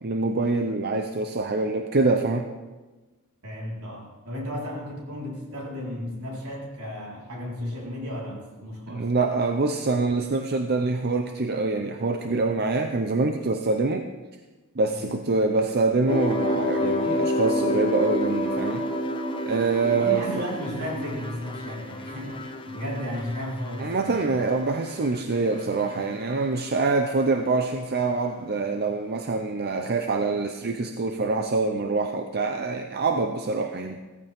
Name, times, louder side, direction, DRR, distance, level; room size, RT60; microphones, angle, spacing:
voice 1, 0.0-2.5 8.9-14.1 14.8-18.9 19.4-20.4 23.8-34.0, right 3 dB, 45° right, 6 dB, 0.7 m, -25 dB
voice 2, 3.4-9.1 14.9-15.1 19.9-24.4, equal, 75° right, -4 dB, 4.4 m, -34 dB
sound 1, 16.1-25.2 25.5-26.2, left 1 dB, 25° left, 1.0 m, -29 dB
16.5 x 14.5 x 3.6 m, 1.2 s
head